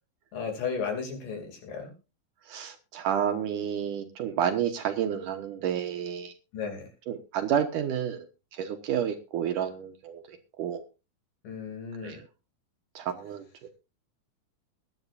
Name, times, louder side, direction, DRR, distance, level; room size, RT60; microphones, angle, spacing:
voice 1, 0.3-1.9 6.5-6.9 11.4-12.2, left 6 dB, 60° left, 3 dB, 4.3 m, -34 dB
voice 2, 2.5-6.3 7.1-8.3 8.5-10.8 12.0-12.2 13.0-13.7, right 9 dB, 70° right, 6 dB, 2.3 m, -30 dB
21.5 x 9.9 x 2.6 m, 0.30 s
omnidirectional pair, 4.3 m